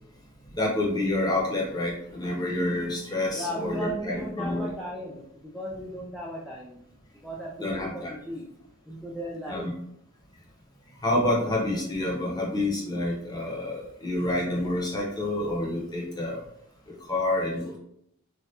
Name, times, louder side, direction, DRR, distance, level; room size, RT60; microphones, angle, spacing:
voice 1, 0.5-4.7 7.6-8.1 9.5-9.7 11.0-16.4 16.9-17.8, left 1 dB, 20° left, -3 dB, 0.8 m, -28 dB
voice 2, 3.3-6.8 7.2-8.5 8.9-9.7, equal, ahead, -5 dB, 0.3 m, -37 dB
3.1 x 2.4 x 2.8 m, 0.74 s
head